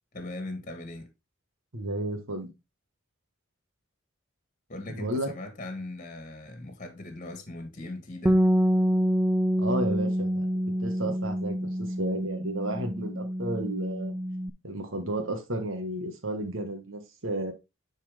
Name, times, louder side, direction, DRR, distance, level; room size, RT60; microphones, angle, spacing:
voice 1, 0.1-1.1 4.7-8.4, left 2 dB, 40° left, 1.6 m, -39 dB
voice 2, 1.7-2.5 4.9-5.3 9.6-10.5 10.8-14.1 14.6-17.5, right 1 dB, 70° right, 1.6 m, -32 dB
Bass guitar, 8.3-14.5, equal, 10° right, 0.4 m, -26 dB
9.9 x 4.3 x 3.6 m
head